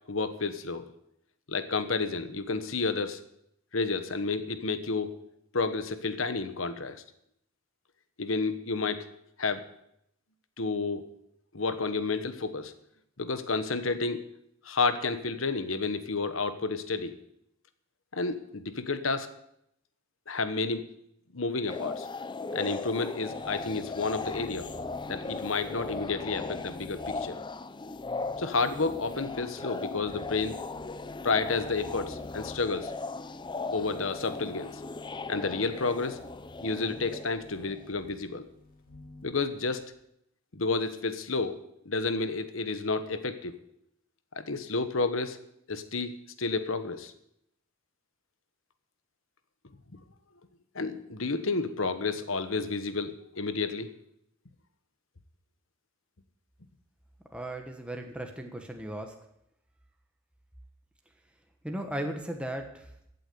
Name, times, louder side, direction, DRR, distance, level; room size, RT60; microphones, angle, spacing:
voice 1, 0.1-0.9 1.5-3.2 3.7-5.1 5.5-7.0 8.2-9.1 9.4-9.6 10.6-11.0 11.5-12.7 13.2-14.2 14.6-17.1 18.1-19.3 20.3-20.8 21.3-22.1 22.5-24.7 25.1-27.4 28.4-30.6 31.2-32.9 33.7-34.8 35.3-36.2 36.6-38.5 39.2-39.8 40.5-41.6 41.8-43.5 44.4-45.4 45.7-47.1 49.9-50.0 50.7-53.9, left 4 dB, 75° left, 11 dB, 1.3 m, -30 dB
sound 1, 21.7-37.9, left 3 dB, 25° left, 0.6 m, -38 dB
sound 2, 23.2-39.8, left 1 dB, 45° left, 2.9 m, -50 dB
voice 2, 57.3-59.1 61.6-62.9, right 1 dB, 5° right, 3 dB, 1.3 m, -36 dB
15.0 x 8.5 x 8.5 m, 0.76 s
head